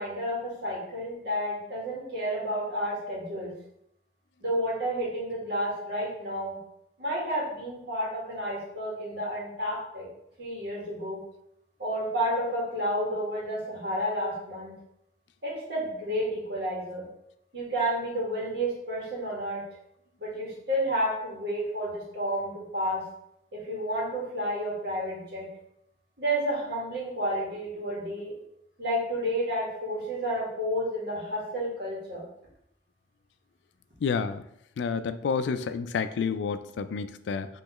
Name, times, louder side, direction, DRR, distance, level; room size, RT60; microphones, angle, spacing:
voice 1, 0.0-3.6 4.4-6.6 7.0-10.1 10.4-11.2 11.8-14.7 15.4-17.1 17.5-19.6 20.2-23.0 23.5-25.5 26.2-28.3 28.8-32.3, equal, 65° right, -5 dB, 1.7 m, -31 dB
voice 2, 34.0-34.4 34.8-37.5, left 5 dB, 80° left, 12 dB, 0.3 m, -29 dB
5.6 x 3.1 x 3.0 m, 0.78 s
head